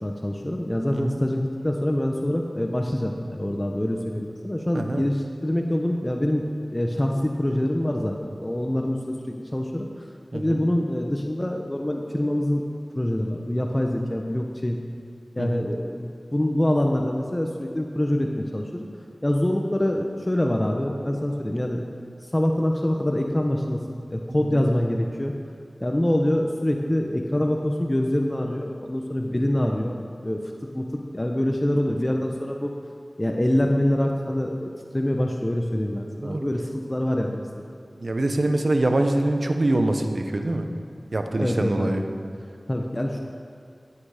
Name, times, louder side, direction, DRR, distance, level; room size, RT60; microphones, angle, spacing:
voice 1, 0.0-6.4 6.7-10.1 10.3-12.6 12.9-14.8 15.4-18.9 19.2-21.9 22.3-23.8 24.1-25.3 25.8-29.9 30.2-30.4 30.7-30.9 31.1-32.7 33.2-37.4 41.4-42.0 42.7-43.2, left 1 dB, 25° left, 1 dB, 1.0 m, -25 dB
voice 2, 38.0-40.7 41.1-42.0, right 2 dB, 60° right, 5 dB, 1.0 m, -24 dB
14.5 x 8.8 x 5.0 m, 2.4 s
wide cardioid pair, 45°, 0 cm